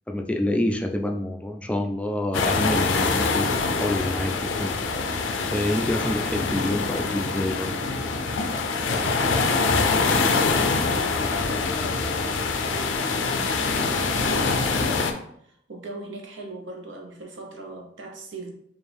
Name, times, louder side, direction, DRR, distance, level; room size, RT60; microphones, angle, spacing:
voice 1, 0.1-4.7 5.5-7.9, left 1 dB, 5° left, 4 dB, 0.3 m, -27 dB
sound 1, 2.3-15.1, left 4 dB, 90° left, 0.5 m, -24 dB
voice 2, 8.5-9.9 13.2-18.5, right 2 dB, 80° right, 2 dB, 0.9 m, -39 dB
4.3 x 2.5 x 3.4 m, 0.70 s
head